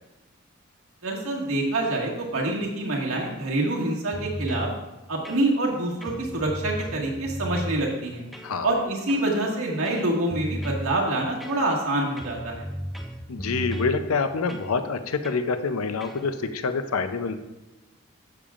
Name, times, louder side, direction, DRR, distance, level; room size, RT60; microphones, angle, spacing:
voice 1, 1.0-4.7 5.1-8.2 8.6-12.7, right 1 dB, 80° right, -2 dB, 1.8 m, -26 dB
sound 1, 4.1-4.7 5.2-5.7 6.0-7.8 8.3-8.6 9.1-9.4 9.8-10.9 11.4-11.9 12.2-14.0 14.5-14.7 15.2-15.5 16.0-16.2, equal, ahead, 0.5 m, -35 dB
voice 2, 13.3-17.4, left 4 dB, 85° left, 9 dB, 0.6 m, -26 dB
12.0 x 7.0 x 2.5 m, 1.0 s
head